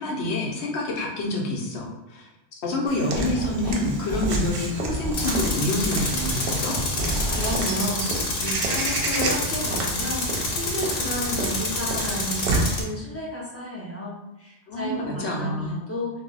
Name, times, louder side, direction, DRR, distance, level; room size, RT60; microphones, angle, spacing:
voice 1, 0.0-2.2 2.6-6.7 14.7-15.8, left 1 dB, 90° left, -1 dB, 0.9 m, -27 dB
Walk footsteps / Bird vocalization bird call bird song, 2.9-12.8, right 2 dB, 65° right, 0.7 m, -31 dB
sound 1, 3.1-3.8 4.1-7.6, equal, 25° right, 0.8 m, -30 dB
Tools, 5.1-12.8, left 2 dB, 65° left, 0.8 m, -28 dB
voice 2, 7.0-16.2, equal, 20° left, -5 dB, 0.4 m, -32 dB
2.3 x 2.0 x 3.7 m, 0.90 s
omnidirectional pair, 1.1 m